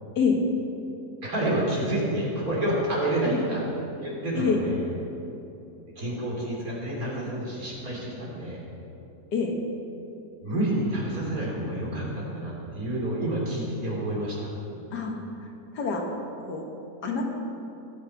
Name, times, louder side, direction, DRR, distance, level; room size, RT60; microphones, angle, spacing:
voice 1, 1.2-3.6 4.0-4.8 6.0-8.6 10.4-14.5, right 1 dB, 60° right, -4 dB, 3.7 m, -29 dB
voice 2, 15.7-16.1 16.5-16.7 17.0-17.3, left 5 dB, 80° left, 1 dB, 2.1 m, -26 dB
21.5 x 7.8 x 4.8 m, 2.8 s
omnidirectional pair, 1.7 m